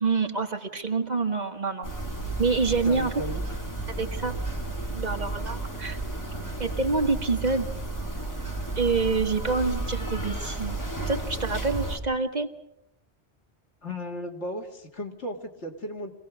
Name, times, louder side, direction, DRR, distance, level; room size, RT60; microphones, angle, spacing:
voice 1, 0.0-1.9 2.4-3.1 4.0-4.3 4.9-6.0 6.6-7.7 8.8-10.8 11.1-12.5, right 4 dB, 40° right, 5 dB, 1.4 m, -27 dB
sound 1, 1.8-12.0, right 2 dB, 15° left, 2.4 m, -33 dB
voice 2, 2.8-3.4 13.8-16.1, left 1 dB, 85° left, 3 dB, 2.3 m, -35 dB
25.5 x 17.0 x 6.0 m, 0.83 s
omnidirectional pair, 1.1 m